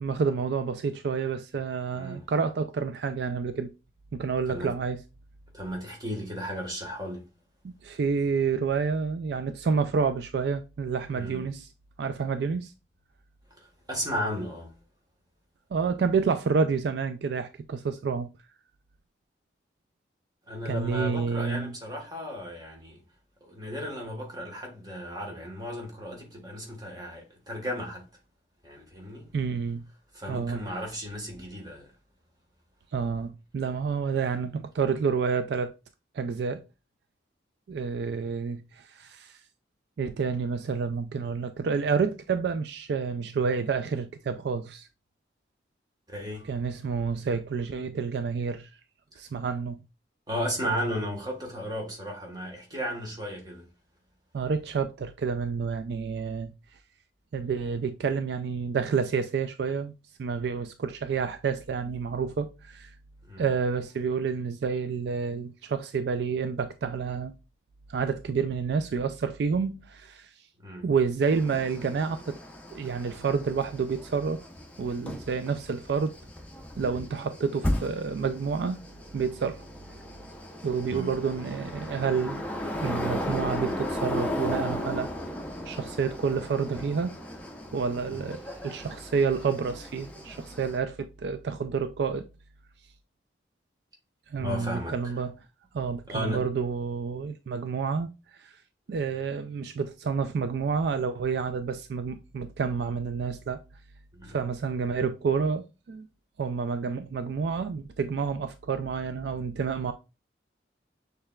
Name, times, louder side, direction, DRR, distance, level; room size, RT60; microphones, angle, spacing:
voice 1, 0.0-3.7 4.1-5.0 7.6-11.7 12.0-12.7 15.7-18.3 20.7-21.7 29.3-29.8 30.3-30.6 32.9-35.7 36.1-36.6 37.7-39.4 40.0-44.9 46.5-48.7 49.2-49.8 54.3-56.5 57.3-59.9 60.2-62.9 63.4-67.3 67.9-70.3 70.8-72.4 72.7-74.4 74.8-76.1 76.8-78.8 79.1-79.6 80.6-82.4 82.8-85.1 85.7-87.1 87.7-92.2 94.3-95.3 95.7-98.1 98.4-98.5 98.9-103.6 104.3-106.1 106.4-109.9, right 5 dB, 65° right, 0.3 m, -29 dB
voice 2, 1.9-2.2 4.5-4.7 5.5-7.3 11.1-11.4 13.5-14.8 20.5-23.0 23.4-28.0 28.6-29.3 30.1-31.9 46.1-46.5 49.1-49.2 50.3-53.7 63.2-63.5 70.6-70.9 80.9-81.1 88.1-88.3 94.4-95.1 96.1-96.5 104.1-104.4, equal, 20° right, 1.3 m, -35 dB
sound 1, 71.2-90.8, left 1 dB, 10° left, 0.7 m, -36 dB
6.5 x 3.3 x 2.2 m
head